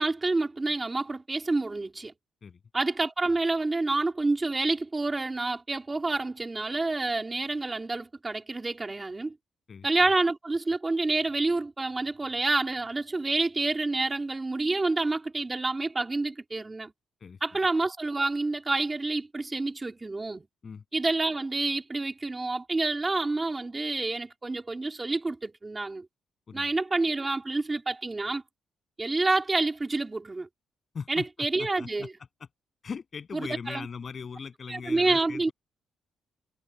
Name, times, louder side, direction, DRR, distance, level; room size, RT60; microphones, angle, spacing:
voice 1, 0.0-2.1 2.7-9.4 9.8-16.9 17.4-20.5 20.9-26.1 26.5-28.4 29.0-30.5 31.1-32.1 33.3-33.9 34.7-35.5, right 3 dB, 15° right, 3.7 m, -28 dB
voice 2, 30.9-32.1 32.8-35.5, left 6 dB, 30° left, 8.0 m, -39 dB
cardioid pair, 175°, 0 cm